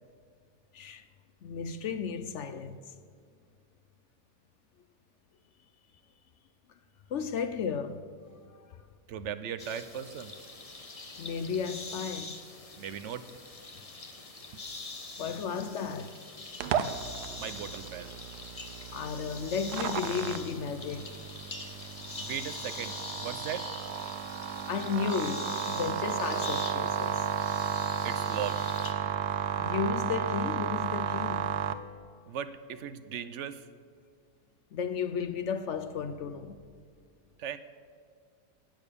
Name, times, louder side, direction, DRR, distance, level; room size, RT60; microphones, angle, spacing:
voice 1, 0.7-1.0 1.4-2.8 7.1-8.0 8.5-8.8 11.2-12.4 15.2-16.2 18.9-21.2 24.7-27.3 29.0-29.1 29.6-31.6 34.7-36.6, left 6 dB, 65° left, 0.7 m, -34 dB
voice 2, 9.1-10.3 12.8-13.3 17.4-18.1 22.2-23.7 28.0-28.6 32.3-33.6 37.4-37.6, right 9 dB, 60° right, 0.8 m, -38 dB
sound 1, 9.6-28.9, left 3 dB, 25° left, 1.0 m, -43 dB
sound 2, 16.6-31.7, right 8 dB, 75° right, 1.2 m, -33 dB
18.5 x 7.1 x 6.8 m
omnidirectional pair, 1.8 m